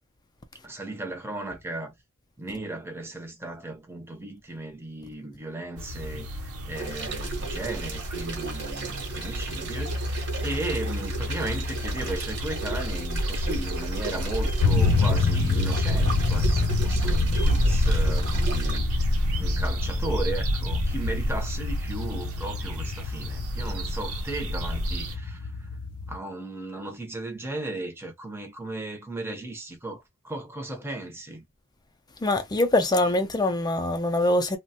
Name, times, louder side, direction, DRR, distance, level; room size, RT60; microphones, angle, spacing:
voice 1, 0.6-1.9 2.4-25.7 26.1-31.4, right 2 dB, 10° right, 0.7 m, -36 dB
sound 1, 5.8-25.1, equal, 80° right, 0.8 m, -29 dB
sound 2, 6.7-18.8, right 4 dB, 55° right, 1.0 m, -37 dB
sound 3, 14.6-26.2, left 4 dB, 70° left, 0.5 m, -28 dB
voice 2, 32.2-34.6, left 1 dB, 20° left, 0.5 m, -23 dB
3.0 x 2.1 x 2.8 m
head